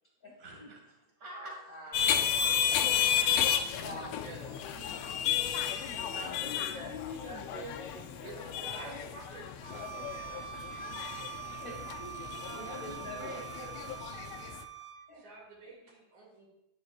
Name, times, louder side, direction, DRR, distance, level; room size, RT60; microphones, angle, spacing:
voice 1, 0.4-1.5 2.1-3.6 5.4-5.6 6.1-7.7 12.4-13.4, right 2 dB, 30° right, 0 dB, 2.2 m, -47 dB
voice 2, 1.3-2.9 3.6-5.0 5.6-6.9 7.2-8.7 11.6-14.0 14.7-15.2, left 1 dB, 40° left, -3 dB, 1.4 m, -48 dB
sound 1, 1.9-14.6, left 9 dB, 80° left, 1.4 m, -33 dB
voice 3, 3.8-4.6 8.2-8.3 8.6-10.7 15.2-16.5, right 2 dB, 80° right, -3 dB, 3.9 m, -49 dB
Bowed string instrument, 9.6-15.0, right 10 dB, 60° right, 1.9 m, -44 dB
10.5 x 9.4 x 2.5 m, 0.87 s
omnidirectional pair, 3.4 m